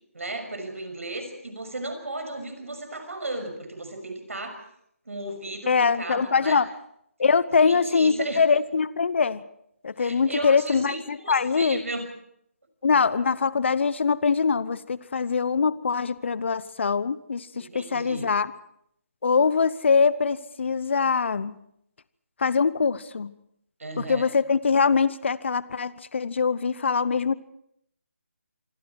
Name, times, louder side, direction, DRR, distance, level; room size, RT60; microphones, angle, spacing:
voice 1, 0.1-4.6 5.0-6.6 7.6-8.4 10.0-12.0 17.5-18.3 23.8-24.3, right 2 dB, 75° right, 8 dB, 6.3 m, -35 dB
voice 2, 5.7-6.7 7.2-9.4 9.8-11.8 12.8-18.5 19.2-21.6 22.4-23.3 24.0-27.3, left 5 dB, 55° left, 18 dB, 0.9 m, -23 dB
27.0 x 22.5 x 4.7 m, 0.73 s
figure-of-eight pair, 155°, 8 cm